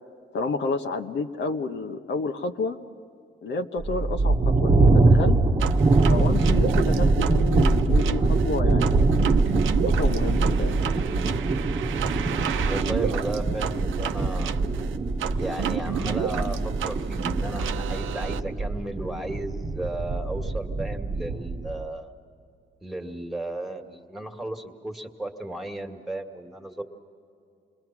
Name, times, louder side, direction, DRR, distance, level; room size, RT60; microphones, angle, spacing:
voice 1, 0.3-2.8 3.4-5.4 6.1-9.1 9.8-10.8, left 3 dB, 65° left, 4 dB, 1.1 m, -30 dB
sound 1, 3.8-21.8, right 3 dB, 25° right, 1.2 m, -23 dB
sound 2, 5.6-18.4, right 10 dB, 80° right, 0.8 m, -33 dB
voice 2, 12.6-14.6 15.4-22.1 22.8-26.8, right 1 dB, ahead, 4 dB, 1.9 m, -34 dB
28.5 x 21.5 x 6.0 m, 2.5 s
cardioid pair, 90°, 20 cm